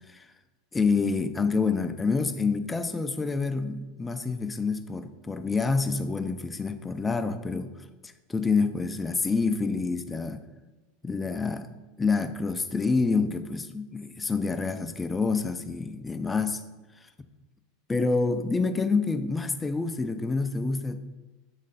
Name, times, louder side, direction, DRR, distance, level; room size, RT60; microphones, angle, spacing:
voice 1, 0.7-7.7 8.0-10.4 11.0-11.7 12.0-16.6 17.9-21.0, left 4 dB, 15° left, 9 dB, 0.4 m, -27 dB
7.6 x 3.2 x 4.0 m, 1.2 s
supercardioid pair, 120°, 0 cm